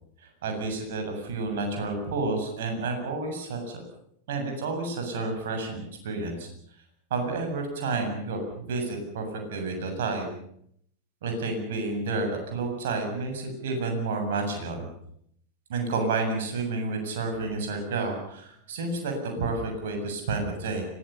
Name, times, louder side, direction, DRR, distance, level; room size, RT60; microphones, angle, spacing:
voice 1, 0.4-3.8 4.3-6.5 7.1-10.3 11.2-14.9 15.7-20.8, right 3 dB, 55° right, 4 dB, 7.5 m, -30 dB
25.5 x 19.0 x 7.1 m, 0.69 s
figure-of-eight pair, 90°, 0 cm